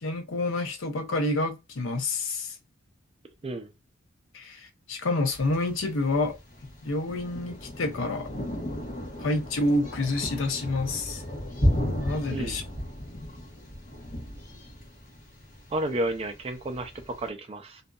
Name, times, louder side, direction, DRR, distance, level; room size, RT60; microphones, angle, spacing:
voice 1, 0.0-2.6 4.3-6.3 6.8-8.3 9.2-11.2 12.0-12.6, left 2 dB, 70° left, 0.7 m, -28 dB
Thunder, 5.3-17.3, equal, 40° left, 1.0 m, -34 dB
voice 2, 15.7-17.8, right 1 dB, 30° right, 0.4 m, -31 dB
2.6 x 2.5 x 2.2 m
head